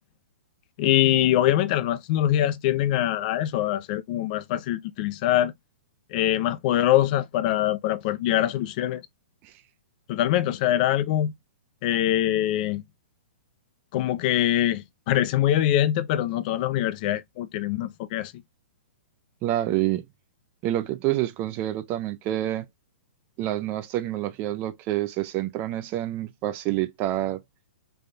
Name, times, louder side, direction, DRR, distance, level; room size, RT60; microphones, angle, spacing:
voice 1, 0.8-5.5 6.1-9.0 10.1-11.3 11.8-12.8 13.9-18.3, left 12 dB, 40° left, 0.4 m, -23 dB
voice 2, 19.4-20.1 20.6-22.7 23.4-27.4, right 14 dB, 30° right, 0.4 m, -27 dB
3.4 x 2.2 x 3.9 m
hypercardioid pair, 140°, 7 cm